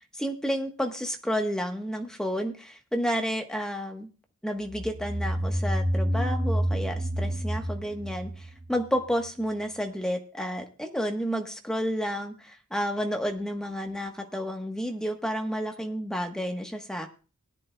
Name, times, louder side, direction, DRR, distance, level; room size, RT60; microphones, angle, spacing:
voice 1, 0.2-4.1 4.4-17.1, equal, 5° left, 4 dB, 1.1 m, -31 dB
sound 1, 4.7-9.3, equal, 40° right, 1.1 m, -29 dB
19.0 x 10.5 x 2.2 m, 0.35 s
head